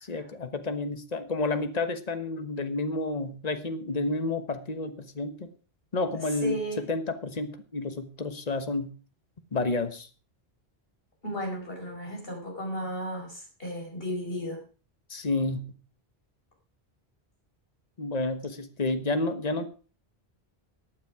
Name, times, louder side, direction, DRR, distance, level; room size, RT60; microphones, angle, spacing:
voice 1, 0.0-5.5 5.9-8.9 9.5-10.1 15.1-15.7 18.0-19.7, left 2 dB, 40° left, 9 dB, 1.3 m, -30 dB
voice 2, 6.4-6.8 11.2-14.6, equal, 65° left, 1 dB, 5.2 m, -34 dB
15.0 x 9.3 x 4.9 m, 0.38 s
omnidirectional pair, 1.1 m